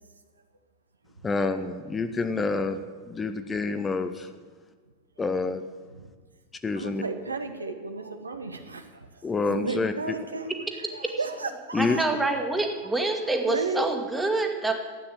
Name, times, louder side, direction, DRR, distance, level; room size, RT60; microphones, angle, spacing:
voice 1, 1.2-2.8 3.0-4.3 5.2-5.6 6.6-7.0 9.2-10.1 11.7-12.2, left 3 dB, 15° left, 9 dB, 0.8 m, -28 dB
voice 2, 6.7-9.2 9.5-12.0 13.5-13.9, right 3 dB, 80° right, 6 dB, 1.2 m, -34 dB
voice 3, 11.8-14.7, right 2 dB, 5° right, 4 dB, 1.9 m, -26 dB
13.0 x 9.0 x 9.1 m, 1.5 s
figure-of-eight pair, 90°, 0 cm